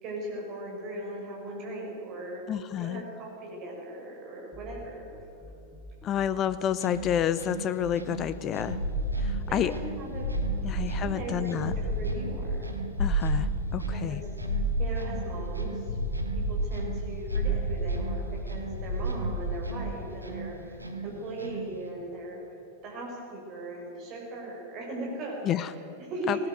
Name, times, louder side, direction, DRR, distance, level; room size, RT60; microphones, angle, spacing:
voice 1, 0.0-2.4 2.8-5.1 9.4-10.3 10.6-12.7 13.9-14.2 14.8-15.9 16.3-22.4 22.8-26.5, right 1 dB, 35° right, -2 dB, 5.5 m, -38 dB
voice 2, 2.5-3.0 6.0-8.8 9.2-9.7 10.6-11.7 13.0-14.2 25.4-25.7 26.3-26.4, left 10 dB, 30° left, 14 dB, 0.6 m, -29 dB
sound 1, 4.5-13.9, left 1 dB, 5° left, 2.3 m, -46 dB
sound 2, 6.7-21.9, right 3 dB, 80° right, 1.8 m, -41 dB
sound 3, 8.7-20.1, right 1 dB, 60° left, 4.5 m, -31 dB
18.5 x 18.5 x 7.7 m, 3.0 s
figure-of-eight pair, 90°, 0 cm